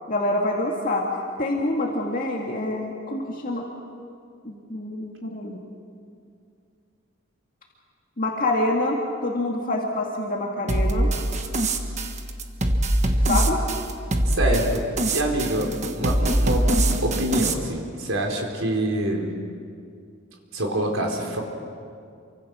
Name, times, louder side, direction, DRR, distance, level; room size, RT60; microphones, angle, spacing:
voice 1, 0.1-1.1 1.4-3.7 4.4-5.6 8.2-11.1 13.3-13.6, left 1 dB, 40° left, -1 dB, 2.1 m, -26 dB
sound 1, 10.7-17.5, right 1 dB, 35° right, 1.4 m, -23 dB
voice 2, 14.3-14.8 15.1-15.7 16.0-16.6 17.0-19.3 20.5-21.4, right 1 dB, 80° right, 0 dB, 4.4 m, -25 dB
28.5 x 24.5 x 6.3 m, 2.3 s
head